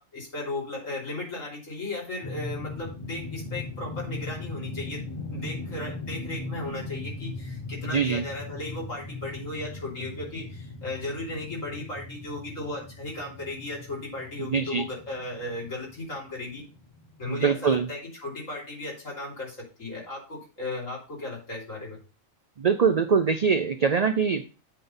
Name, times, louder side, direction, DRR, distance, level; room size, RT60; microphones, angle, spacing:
voice 1, 0.0-16.6 17.2-22.0, left 2 dB, 75° left, -4 dB, 3.6 m, -36 dB
sound 1, 2.2-17.7, left 3 dB, 25° left, 0.7 m, -39 dB
voice 2, 7.9-8.2 14.5-14.8 17.3-17.9 22.6-24.5, right 6 dB, 65° right, 9 dB, 0.4 m, -23 dB
8.3 x 3.9 x 5.3 m, 0.33 s
omnidirectional pair, 1.3 m